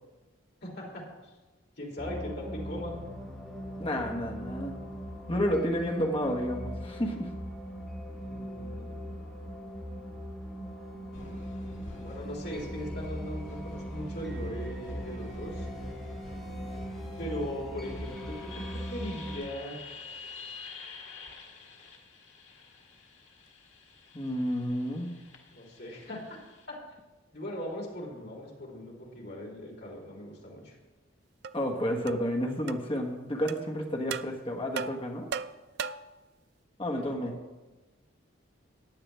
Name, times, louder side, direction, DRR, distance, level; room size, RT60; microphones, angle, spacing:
voice 1, 0.6-1.0 1.8-3.0 8.2-9.3 11.7-15.7 17.2-19.8 25.5-26.4 26.7-26.8 27.3-30.8 36.9-37.3, equal, 55° left, -3 dB, 3.2 m, -39 dB
sound 1, 2.0-19.4, equal, ahead, 2.0 m, -40 dB
voice 2, 3.8-4.8 5.3-7.3 24.1-25.1 31.5-35.3 36.8-37.3, equal, 25° left, 2 dB, 1.4 m, -31 dB
sound 2, 11.1-26.7, left 1 dB, 75° left, 1.7 m, -45 dB
sound 3, 31.4-31.5 32.1-32.3 32.7-32.8 33.5-33.6 34.1-34.3 34.8-36.2, right 6 dB, 55° right, 0.3 m, -36 dB
14.5 x 9.6 x 3.4 m, 1.2 s
head